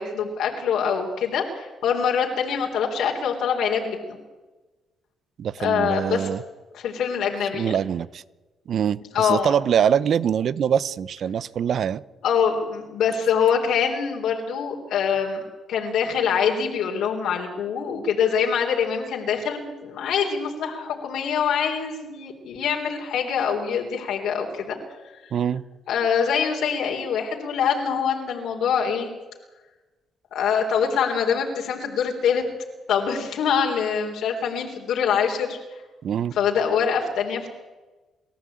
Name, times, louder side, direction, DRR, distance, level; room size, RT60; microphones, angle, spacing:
voice 1, 0.0-4.2 5.6-6.3 6.7-7.7 9.1-9.6 12.2-15.4 15.7-24.8 25.9-29.1 30.3-32.4 32.9-35.6 36.4-37.6, left 7 dB, 80° left, 0 dB, 3.6 m, -24 dB
voice 2, 5.4-6.4 7.5-8.2 8.7-12.0 25.3-25.6 36.0-36.4, right 8 dB, 60° right, 18 dB, 0.8 m, -24 dB
29.5 x 13.5 x 8.7 m, 1.2 s
cardioid pair, 90°, 0 cm